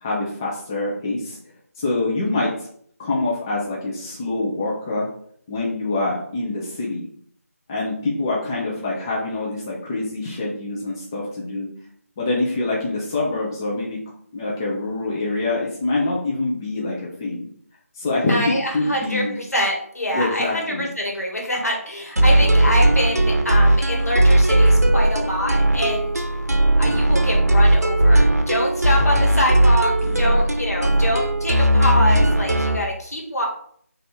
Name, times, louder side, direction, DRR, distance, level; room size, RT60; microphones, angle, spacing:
voice 1, 0.0-1.4 1.8-2.7 3.0-5.1 5.5-7.1 7.7-11.7 12.2-14.0 14.3-17.5 18.0-19.4 20.1-20.9 30.0-30.4, left 2 dB, 15° left, -5 dB, 0.5 m, -25 dB
voice 2, 18.3-26.2 26.8-33.5, equal, 75° left, -1 dB, 1.4 m, -25 dB
sound 1, 22.2-32.8, right 1 dB, 85° right, 0.6 m, -17 dB
3.3 x 2.6 x 4.1 m, 0.62 s
figure-of-eight pair, 160°, 8 cm